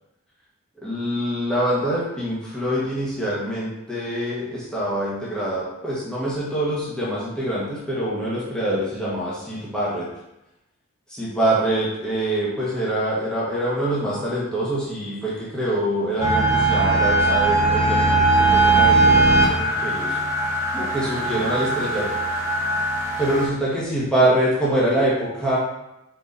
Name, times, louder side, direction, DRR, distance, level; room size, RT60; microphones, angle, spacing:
voice 1, 0.8-10.1 11.1-20.2 20.7-22.0 23.2-25.6, right 1 dB, 5° left, -8 dB, 1.5 m, -25 dB
sound 1, 16.2-23.4, right 2 dB, 15° right, 1.3 m, -20 dB
5.0 x 4.6 x 4.1 m, 0.88 s
head